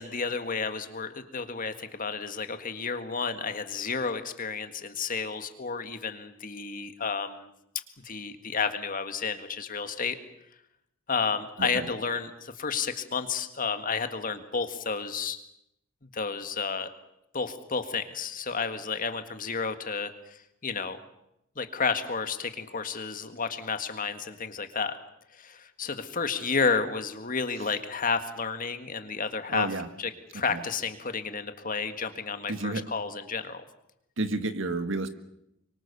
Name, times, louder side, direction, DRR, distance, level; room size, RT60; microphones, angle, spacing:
voice 1, 0.0-7.5 8.0-10.2 11.1-15.4 16.1-16.9 17.3-21.0 21.5-25.0 25.3-29.7 30.0-33.6, left 5 dB, 40° left, 8 dB, 1.8 m, -31 dB
voice 2, 29.5-29.9 30.3-30.6 32.5-32.9 34.2-35.1, right 2 dB, 65° right, 9 dB, 1.8 m, -31 dB
24.5 x 24.0 x 6.9 m, 0.82 s
head